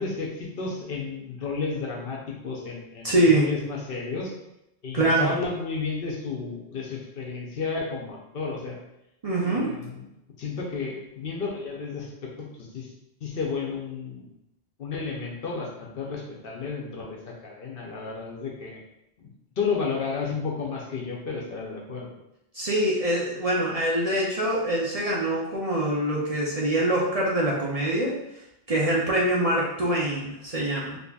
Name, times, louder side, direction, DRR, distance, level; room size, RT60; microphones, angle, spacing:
voice 1, 0.0-4.3 4.8-8.8 9.4-10.1 10.4-12.9 13.2-14.3 14.8-18.8 19.2-19.3 19.6-22.1, left 4 dB, 60° left, -2 dB, 0.9 m, -32 dB
voice 2, 3.0-3.5 4.9-5.3 9.2-9.7 22.5-28.2 28.7-31.0, right 1 dB, 40° right, -5 dB, 0.6 m, -24 dB
4.0 x 2.8 x 2.3 m, 0.85 s
omnidirectional pair, 1.1 m